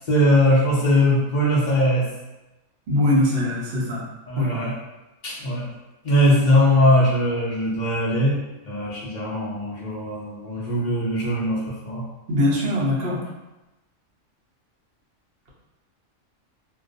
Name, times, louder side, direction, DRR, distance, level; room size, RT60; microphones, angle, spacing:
voice 1, 0.1-2.1 4.3-4.7 5.2-5.7 6.0-8.4 8.6-12.0, left 1 dB, 85° left, -5 dB, 0.4 m, -20 dB
voice 2, 2.9-4.0 4.4-4.5 12.3-13.2, left 1 dB, 55° right, -5 dB, 0.7 m, -21 dB
2.3 x 2.2 x 2.5 m, 1.0 s
omnidirectional pair, 1.4 m